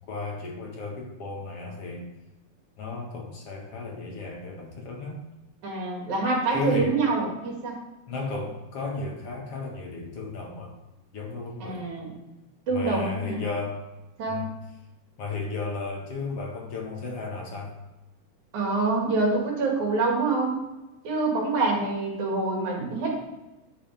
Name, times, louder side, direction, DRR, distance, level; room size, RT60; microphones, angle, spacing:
voice 1, 0.1-2.1 2.8-5.2 6.5-7.0 8.1-10.8 11.1-11.9 12.7-13.8 14.3-14.5 15.2-17.7, left 3 dB, 55° left, 0 dB, 2.4 m, -34 dB
voice 2, 5.6-7.8 11.6-12.2 12.7-13.4 14.2-14.5 18.5-20.6 21.0-23.2, right 3 dB, 85° right, -1 dB, 3.6 m, -26 dB
11.0 x 8.3 x 3.5 m, 1.0 s
omnidirectional pair, 3.3 m